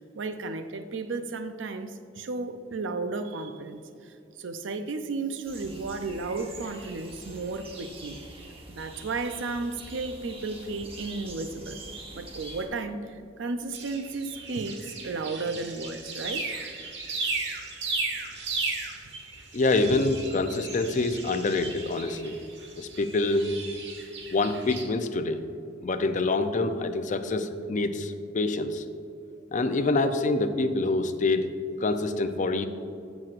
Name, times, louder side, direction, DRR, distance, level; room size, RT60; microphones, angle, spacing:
voice 1, 0.1-11.8 12.1-16.7, right 3 dB, 85° right, 9 dB, 0.5 m, -34 dB
sound 1, 5.5-12.7, right 2 dB, 30° right, 1.1 m, -45 dB
sound 2, 13.7-24.8, right 3 dB, 65° right, 1.3 m, -36 dB
voice 2, 19.5-22.4 22.8-23.5 24.3-25.4 25.8-28.8 29.5-31.5 31.8-32.7, left 2 dB, 40° left, 9 dB, 0.5 m, -26 dB
15.0 x 6.1 x 2.5 m, 2.5 s
head